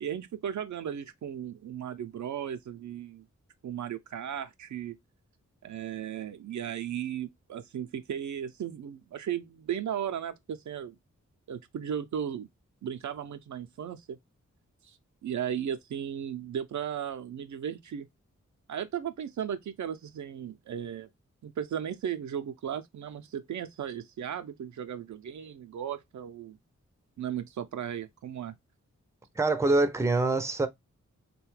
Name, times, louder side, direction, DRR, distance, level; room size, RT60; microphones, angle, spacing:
voice 1, 0.0-3.2 3.6-5.0 5.6-11.0 11.5-12.5 12.8-14.2 14.8-15.0 15.2-18.1 18.7-21.1 21.4-26.6 27.2-28.5, right 9 dB, 70° right, 0.4 m, -36 dB
voice 2, 29.4-30.7, right 2 dB, 10° right, 0.5 m, -25 dB
2.7 x 2.2 x 3.1 m
cardioid pair, 45°, 30 cm